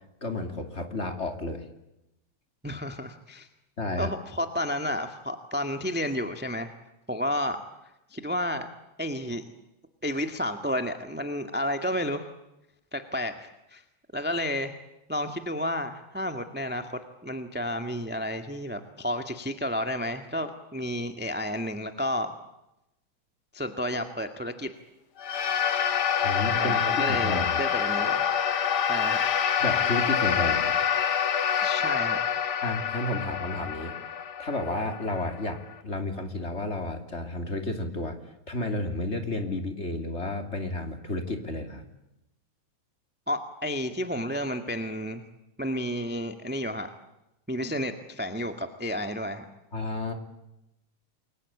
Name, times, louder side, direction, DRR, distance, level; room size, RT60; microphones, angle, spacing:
voice 1, 0.2-1.6 3.8-4.1 26.2-27.6 29.6-30.7 32.6-33.9 34.4-38.2 38.5-41.9 49.7-50.1, left 2 dB, 25° left, 6 dB, 2.8 m, -31 dB
voice 2, 2.6-3.5 4.0-6.7 7.1-7.6 8.1-8.7 9.0-9.4 10.0-12.3 12.9-13.8 14.1-14.7 15.1-22.3 23.5-24.7 26.5-28.2 28.9-29.2 31.6-32.2 43.3-45.2 45.6-46.9 47.5-49.5, left 1 dB, 5° right, 7 dB, 1.0 m, -31 dB
sound 1, 25.2-35.7, left 8 dB, 50° left, 1.4 m, -26 dB
29.0 x 22.5 x 8.4 m, 0.90 s
omnidirectional pair, 3.4 m